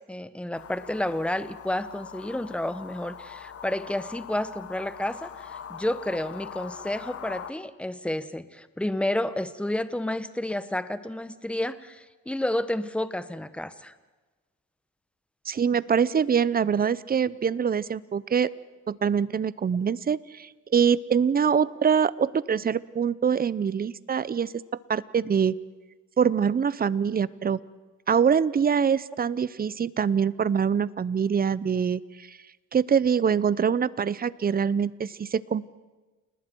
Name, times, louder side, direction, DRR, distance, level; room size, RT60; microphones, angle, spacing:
voice 1, 0.1-13.9, left 1 dB, 5° left, 13 dB, 1.0 m, -30 dB
sound 1, 0.5-7.5, left 8 dB, 50° left, 1.1 m, -42 dB
voice 2, 15.5-18.5 18.9-24.5 24.9-25.6 26.2-27.6 28.1-32.4 32.7-35.7, right 7 dB, 30° right, 19 dB, 0.6 m, -24 dB
29.5 x 19.5 x 4.6 m, 1.2 s
cardioid pair, 90°, 30 cm